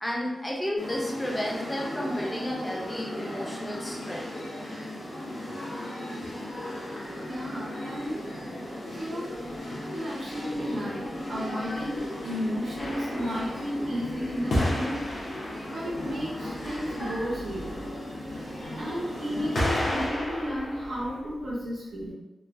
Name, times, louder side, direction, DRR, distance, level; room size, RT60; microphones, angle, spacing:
voice 1, 0.0-4.3 5.5-5.6, left 1 dB, 15° left, -3 dB, 0.5 m, -32 dB
sound 1, 0.8-20.1, left 1 dB, 90° left, 0.9 m, -36 dB
voice 2, 7.3-8.3 8.9-9.4 9.9-15.0 15.7-22.1, equal, 75° right, -9 dB, 0.6 m, -33 dB
sound 2, 12.8-13.9 14.5-16.0 18.3-18.4 19.6-21.2, left 1 dB, 60° left, 0.7 m, -31 dB
3.0 x 2.1 x 2.5 m, 1.0 s
wide cardioid pair, 165°, 0 cm